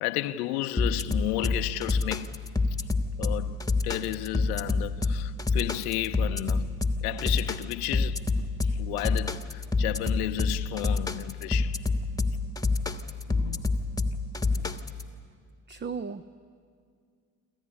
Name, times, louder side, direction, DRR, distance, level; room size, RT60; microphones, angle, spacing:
voice 1, 0.0-2.4 3.2-3.6 3.8-6.7 7.0-11.8 13.3-13.7 14.6-14.7, left 16 dB, 75° left, 0.7 m, -33 dB
sound 1, 0.8-15.0, left 3 dB, 10° left, 1.4 m, -27 dB
voice 2, 15.7-16.2, right 5 dB, 25° right, 0.7 m, -35 dB
26.5 x 14.5 x 9.9 m
hypercardioid pair, 55°, 45 cm